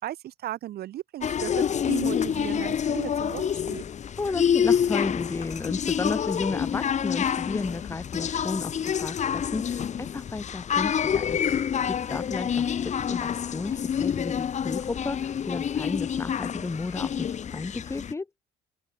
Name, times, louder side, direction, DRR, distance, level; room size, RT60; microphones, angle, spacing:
voice 1, 0.0-3.8, right 13 dB, 70° right, 4.5 m, -35 dB
sound 1, 1.2-18.1, left 8 dB, 45° left, 3.0 m, -27 dB
voice 2, 4.2-18.3, left 3 dB, 15° left, 1.0 m, -33 dB
open air
cardioid pair, 110°, 17 cm